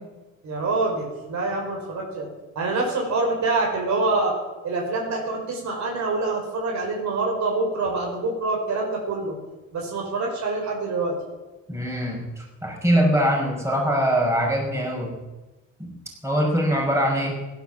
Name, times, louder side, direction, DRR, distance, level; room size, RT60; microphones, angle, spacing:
voice 1, 0.4-2.3 2.6-4.4 4.6-9.4 9.7-11.2, right 3 dB, 65° right, 0 dB, 5.0 m, -25 dB
voice 2, 11.7-15.1 15.8-15.9 16.2-17.4, equal, 10° right, -2 dB, 5.6 m, -23 dB
15.5 x 11.5 x 7.5 m, 1.1 s
cardioid pair, 90°, 30 cm